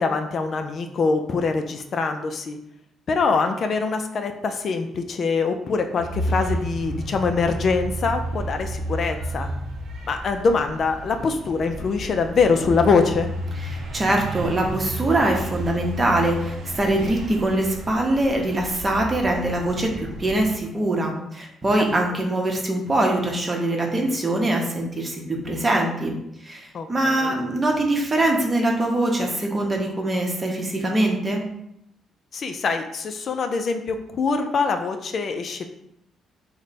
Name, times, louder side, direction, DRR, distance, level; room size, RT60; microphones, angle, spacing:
voice 1, 0.0-2.6 3.1-9.5 10.1-13.3 21.9-22.0 26.7-27.3 32.3-35.7, left 4 dB, 55° left, 6 dB, 0.3 m, -24 dB
sound 1, 6.0-20.5, right 1 dB, 75° right, 0.5 m, -32 dB
voice 2, 13.6-26.2 26.4-31.4, right 1 dB, 30° right, 1 dB, 0.8 m, -23 dB
3.2 x 2.1 x 4.0 m, 0.78 s
cardioid pair, 90°, 0 cm